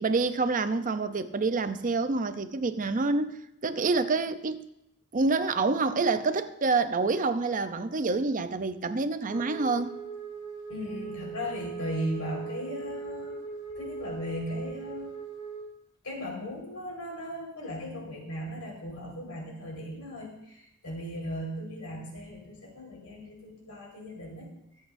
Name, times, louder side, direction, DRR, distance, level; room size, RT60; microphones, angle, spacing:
voice 1, 0.0-4.7 5.1-9.9, right 3 dB, 35° right, 0.6 m, -27 dB
Wind instrument woodwind instrument, 9.3-15.7, right 5 dB, 20° left, 2.6 m, -40 dB
voice 2, 10.7-13.4 13.8-15.1 16.0-24.5, equal, 80° left, 4.6 m, -37 dB
24.5 x 8.2 x 2.6 m
head